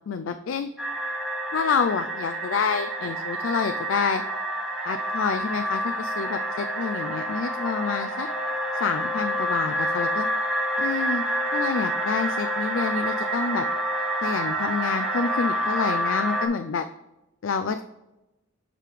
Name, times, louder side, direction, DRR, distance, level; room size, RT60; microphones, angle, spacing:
voice 1, 0.1-0.7 1.5-4.2 4.8-8.3 8.7-10.3 10.8-11.2 11.5-13.7 14.2-16.9 17.4-17.8, left 5 dB, 75° left, 8 dB, 0.4 m, -28 dB
sound 1, 0.8-16.5, right 1 dB, ahead, 1.1 m, -28 dB
7.5 x 5.1 x 3.2 m, 0.97 s
head